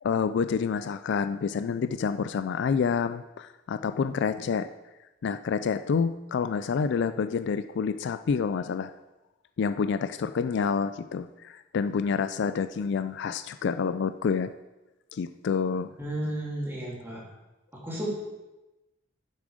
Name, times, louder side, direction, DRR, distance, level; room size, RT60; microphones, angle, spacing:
voice 1, 0.0-4.7 5.2-8.9 9.6-14.5 15.1-15.9, left 6 dB, 60° left, 12 dB, 0.3 m, -28 dB
voice 2, 16.0-17.2 17.8-18.1, right 1 dB, 10° right, -5 dB, 2.9 m, -32 dB
9.6 x 7.4 x 5.0 m, 1.1 s
head